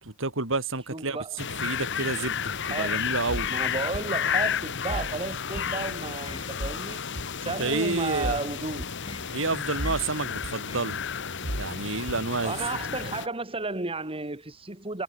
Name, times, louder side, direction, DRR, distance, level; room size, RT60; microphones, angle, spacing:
voice 1, 0.0-3.5 7.6-8.5 9.3-11.0 11.6-12.5, right 3 dB, 70° right, 3.0 m, -30 dB
voice 2, 0.9-1.4 2.6-3.1 3.5-7.0 7.4-8.9 12.4-15.0, right 3 dB, 30° right, 2.5 m, -33 dB
sound 1, 1.4-13.3, left 7 dB, 60° left, 1.7 m, -32 dB
sound 2, 3.3-3.5 3.9-4.1 4.9-5.1 5.6-5.7 6.6-6.8 7.2-7.3 8.2-8.4 8.8-8.9 9.8-10.1 10.4-10.5 11.4-11.7 12.1-12.2, right 1 dB, 90° right, 4.0 m, -33 dB
sound 3, 5.5-5.9 6.3-6.6 9.0-9.3 9.8-10.1 10.7-11.0, left 2 dB, 25° left, 7.3 m, -43 dB
head